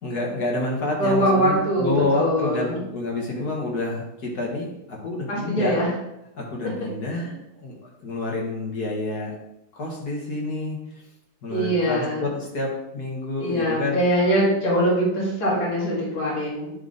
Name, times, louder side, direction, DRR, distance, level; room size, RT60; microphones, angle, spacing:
voice 1, 0.0-5.8 6.3-9.3 9.7-11.0 11.4-14.1, left 2 dB, 45° left, -2 dB, 2.1 m, -28 dB
voice 2, 1.0-2.8 5.3-5.9 11.5-12.2 13.4-16.7, equal, 65° left, -6 dB, 3.2 m, -22 dB
9.9 x 3.5 x 4.0 m, 0.85 s
omnidirectional pair, 2.4 m